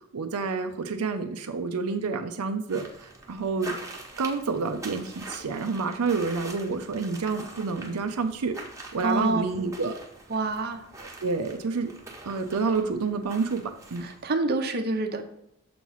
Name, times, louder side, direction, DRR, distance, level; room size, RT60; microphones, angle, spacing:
voice 1, 0.1-3.8 4.2-8.6 8.9-10.0 11.0-11.9 12.2-14.1, right 4 dB, 85° right, 6 dB, 0.6 m, -29 dB
sound 1, 2.7-14.3, right 2 dB, 15° right, 1.0 m, -44 dB
voice 2, 9.0-9.5 10.3-10.8 14.0-15.2, right 2 dB, 45° right, 5 dB, 0.7 m, -27 dB
6.8 x 3.1 x 5.5 m, 0.78 s
head